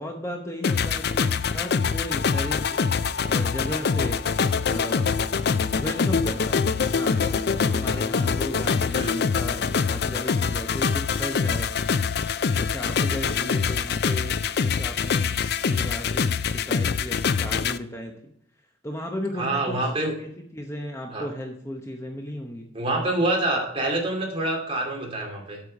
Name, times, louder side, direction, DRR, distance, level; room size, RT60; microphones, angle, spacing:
voice 1, 0.0-4.3 4.7-5.2 5.8-11.7 12.6-15.3 15.6-18.1 18.8-19.8 20.2-22.6, left 1 dB, 15° left, 2 dB, 0.9 m, -35 dB
sound 1, 0.6-17.8, left 5 dB, 55° left, 0.4 m, -24 dB
voice 2, 19.4-20.1 21.1-21.3 22.7-25.6, right 2 dB, 30° right, 0 dB, 2.6 m, -26 dB
8.5 x 6.5 x 5.2 m, 0.70 s
head